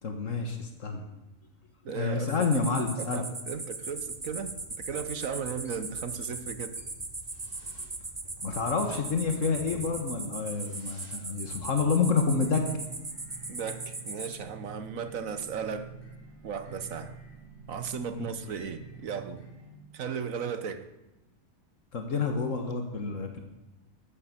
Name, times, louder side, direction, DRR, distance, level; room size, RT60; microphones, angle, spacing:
voice 1, 0.0-1.0 1.9-3.2 8.4-12.6 18.1-18.3 21.9-23.4, left 4 dB, 70° left, 5 dB, 1.8 m, -28 dB
voice 2, 1.8-2.5 3.0-6.8 13.5-15.9 16.4-17.2 17.7-19.4 19.9-20.8, right 6 dB, 85° right, 11 dB, 1.5 m, -36 dB
sound 1, 2.4-14.4, right 3 dB, 20° right, 1.0 m, -39 dB
sound 2, 3.8-19.7, right 3 dB, 40° left, 4.5 m, -49 dB
13.5 x 9.8 x 8.1 m, 0.98 s
omnidirectional pair, 1.4 m